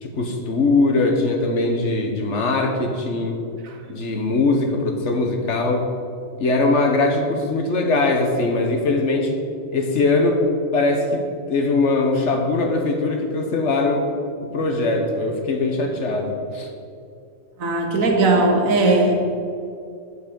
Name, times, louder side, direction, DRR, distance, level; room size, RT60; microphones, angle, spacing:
voice 1, 0.0-3.4 3.9-5.9 6.4-9.4 9.7-10.4 10.7-14.1 14.4-16.7, left 3 dB, 65° left, 3 dB, 1.3 m, -21 dB
voice 2, 17.6-19.1, right 2 dB, 85° right, 3 dB, 1.6 m, -18 dB
8.0 x 5.8 x 6.8 m, 2.5 s
omnidirectional pair, 1.4 m